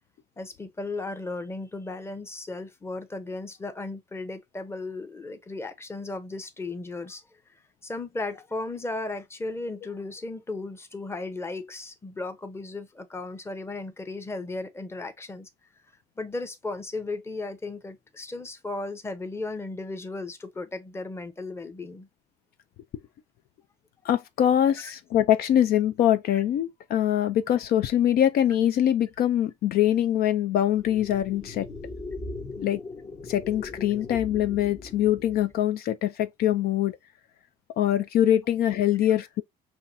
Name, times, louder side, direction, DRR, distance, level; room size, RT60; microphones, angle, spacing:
voice 1, 0.4-7.2 7.8-15.5 16.2-22.1 24.8-24.9, left 2 dB, 15° left, 0.8 m, -35 dB
voice 2, 24.0-31.7 32.6-32.8 33.2-37.0 37.8-39.4, left 11 dB, 65° left, 0.5 m, -23 dB
sound 1, 30.8-35.6, left 3 dB, 35° left, 1.1 m, -39 dB
5.5 x 2.7 x 2.6 m
cardioid pair, 110°, 17 cm